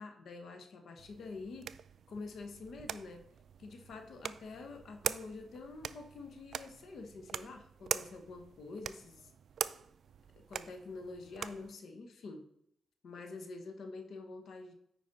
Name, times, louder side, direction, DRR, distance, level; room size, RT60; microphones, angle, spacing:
voice 1, 0.0-1.7 2.1-3.3 3.6-9.3 10.5-12.4 13.0-14.7, left 3 dB, 75° left, 6 dB, 1.1 m, -47 dB
sound 1, 1.0-11.7, right 8 dB, 75° right, 0.3 m, -43 dB
9.0 x 5.1 x 4.0 m, 0.75 s
cardioid pair, 80°, 0 cm